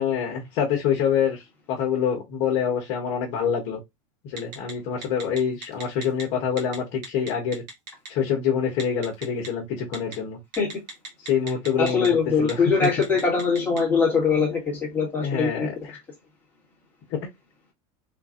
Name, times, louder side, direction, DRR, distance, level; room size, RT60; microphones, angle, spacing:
voice 1, 0.0-1.4 1.7-3.8 4.2-7.6 8.1-10.4 11.3-12.7 15.2-16.0 17.1-17.2, left 7 dB, 50° left, 1.2 m, -26 dB
Telephone, 4.4-4.7 5.0-6.2 6.6-6.8 7.0-8.1 8.8-9.5 9.9-10.1 10.5-12.1 12.4-12.5 12.8-13.8, right 3 dB, 45° right, 1.4 m, -36 dB
voice 2, 11.8-15.7, left 5 dB, 10° left, 1.5 m, -22 dB
3.8 x 2.6 x 2.4 m
supercardioid pair, 145°, 17 cm